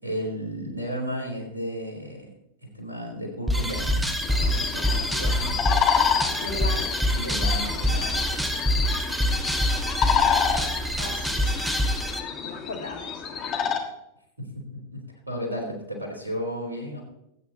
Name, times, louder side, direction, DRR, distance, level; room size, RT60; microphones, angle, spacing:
voice 1, 0.0-2.3 2.6-5.7 6.5-8.6 14.4-17.0, equal, 80° right, 1 dB, 3.6 m, -34 dB
sound 1, 3.5-12.2, equal, 5° right, 1.4 m, -26 dB
sound 2, 4.2-13.8, left 7 dB, 30° left, 1.7 m, -28 dB
voice 2, 6.4-6.9 11.0-11.8 12.4-13.1, left 3 dB, 65° left, 1 dB, 2.6 m, -36 dB
19.5 x 9.0 x 2.9 m, 0.83 s
figure-of-eight pair, 90°, 0 cm